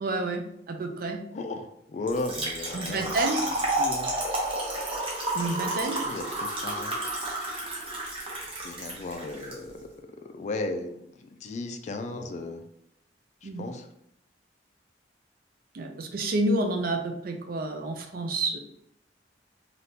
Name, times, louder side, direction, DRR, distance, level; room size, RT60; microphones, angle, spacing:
voice 1, 0.0-1.2 2.7-3.4 5.3-6.0 13.4-13.6 15.7-18.6, right 2 dB, 55° right, 5 dB, 0.4 m, -29 dB
voice 2, 1.3-4.1 6.0-7.0 8.6-12.6 13.4-13.9, left 2 dB, 40° left, 5 dB, 0.3 m, -36 dB
Trickle dribble / Fill (with liquid), 2.1-9.5, right 1 dB, 30° right, 0.8 m, -31 dB
3.4 x 2.4 x 2.7 m, 0.75 s
head